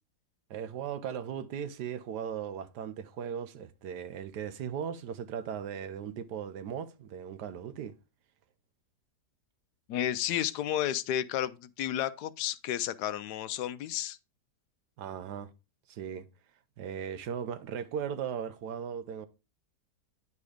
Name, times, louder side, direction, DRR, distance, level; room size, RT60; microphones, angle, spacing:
voice 1, 0.5-7.9 15.0-15.5 15.9-16.3 16.8-19.3, right 8 dB, 80° right, 1.3 m, -37 dB
voice 2, 9.9-14.2, left 11 dB, 75° left, 1.1 m, -32 dB
9.7 x 4.3 x 4.9 m
omnidirectional pair, 1.8 m